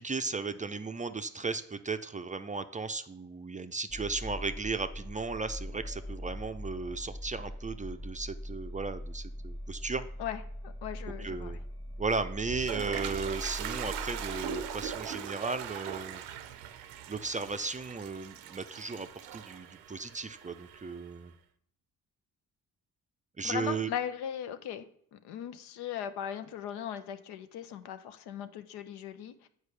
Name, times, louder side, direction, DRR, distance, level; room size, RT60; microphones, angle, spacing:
voice 1, 0.0-10.1 11.2-11.6 12.0-16.2 17.1-21.3 23.4-23.9, right 4 dB, 20° right, 9 dB, 0.4 m, -35 dB
sound 1, 3.9-15.1, equal, 10° left, 1.3 m, -41 dB
voice 2, 10.2-11.6 23.4-29.5, left 9 dB, 75° left, 11 dB, 0.6 m, -38 dB
Toilet flush, 12.2-21.1, right 10 dB, 85° right, 0.6 m, -41 dB
8.1 x 4.7 x 3.3 m, 0.67 s
supercardioid pair, 50°, 40 cm